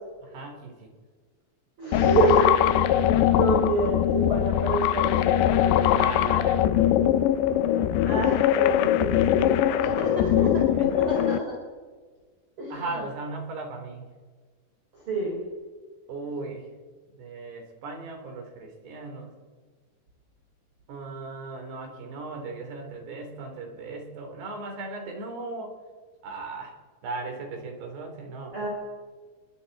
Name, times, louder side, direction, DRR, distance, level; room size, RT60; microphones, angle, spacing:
voice 1, 0.2-0.9 5.7-6.9 9.9-11.0 12.7-14.1 16.1-16.7 17.2-19.3 20.9-25.7 26.2-26.8 27.0-28.6, right 3 dB, 70° right, 3 dB, 5.8 m, -37 dB
voice 2, 1.8-2.5 3.3-6.4 8.0-11.6 12.6-13.1 14.9-15.4 28.5-28.7, right 3 dB, 30° right, -3 dB, 5.0 m, -28 dB
sound 1, 1.9-11.4, left 11 dB, 85° left, 3.0 m, -22 dB
30.0 x 23.0 x 4.3 m, 1.5 s
omnidirectional pair, 5.0 m